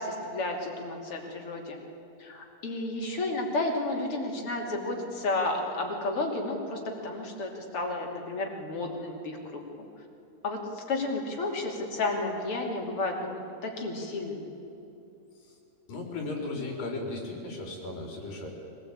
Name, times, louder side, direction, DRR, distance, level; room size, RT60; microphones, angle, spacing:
voice 1, 0.0-1.8 2.2-9.6 10.4-14.4, left 2 dB, 40° left, 1 dB, 3.4 m, -32 dB
voice 2, 15.9-18.5, left 2 dB, 80° left, 0 dB, 5.6 m, -36 dB
24.5 x 18.5 x 8.8 m, 2.9 s
omnidirectional pair, 3.9 m